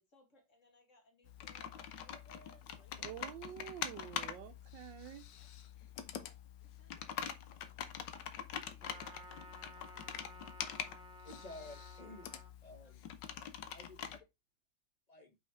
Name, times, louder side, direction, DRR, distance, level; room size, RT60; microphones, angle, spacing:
voice 1, 0.0-3.3 5.3-5.5 6.6-7.3 8.1-10.9 12.8-13.0 13.7-14.0, equal, 40° left, 2.2 m, -68 dB
Computer keyboard, 1.3-14.2, left 9 dB, 75° left, 1.4 m, -45 dB
voice 2, 3.0-5.3, right 12 dB, 80° right, 1.3 m, -48 dB
Trumpet, 8.8-12.5, right 1 dB, 5° right, 1.4 m, -55 dB
voice 3, 11.2-12.3 12.6-13.0 13.7-14.0 15.1-15.3, left 2 dB, 25° left, 1.2 m, -52 dB
5.5 x 5.1 x 4.5 m
omnidirectional pair, 2.0 m